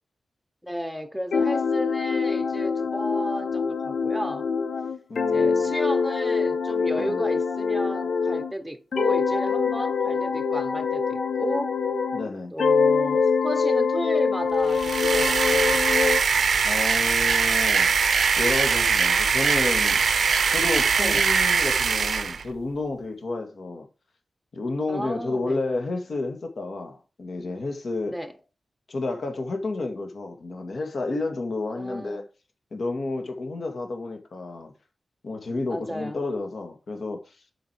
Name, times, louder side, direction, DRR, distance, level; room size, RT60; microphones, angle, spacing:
voice 1, 0.6-4.5 5.3-11.7 12.5-16.2 21.0-21.2 24.9-25.6 28.1-28.3 31.7-32.2 35.7-36.2, equal, ahead, 1.0 m, -33 dB
sound 1, 1.3-8.5 8.9-12.3 12.6-16.2, left 5 dB, 70° left, 0.9 m, -24 dB
voice 2, 5.1-5.7 7.0-7.2 12.1-12.5 16.6-17.9 18.4-23.9 24.5-28.2 28.9-32.3 32.7-34.7 35.2-37.4, left 3 dB, 55° left, 2.0 m, -31 dB
sound 2, 14.7-22.4, right 5 dB, 70° right, 0.6 m, -22 dB
7.4 x 5.3 x 4.6 m
wide cardioid pair, 150°, 0 cm